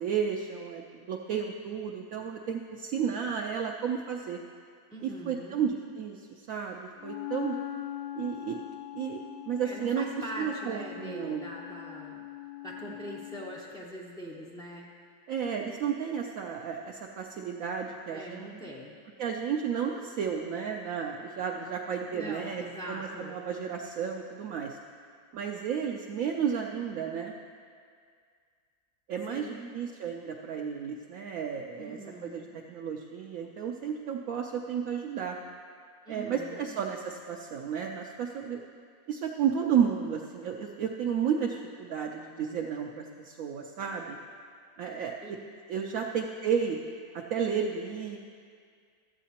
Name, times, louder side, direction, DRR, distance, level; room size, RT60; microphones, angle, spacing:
voice 1, 0.0-4.4 5.0-7.6 8.2-8.6 8.9-11.4 15.3-18.5 19.2-24.8 25.3-27.3 29.1-29.5 29.7-35.4 36.1-38.6 39.1-44.2 44.8-45.2 45.7-46.8 47.1-48.2, right 7 dB, 70° right, 0 dB, 0.9 m, -32 dB
voice 2, 4.9-5.6 9.6-12.2 12.6-14.9 18.1-19.0 22.1-23.4 29.3-29.7 31.8-32.5 36.1-36.7 45.2-45.4, right 1 dB, 5° left, -6 dB, 0.4 m, -42 dB
Wind instrument woodwind instrument, 7.0-13.7, left 15 dB, 70° left, 0.9 m, -41 dB
13.5 x 8.2 x 2.9 m, 2.1 s
omnidirectional pair, 1.6 m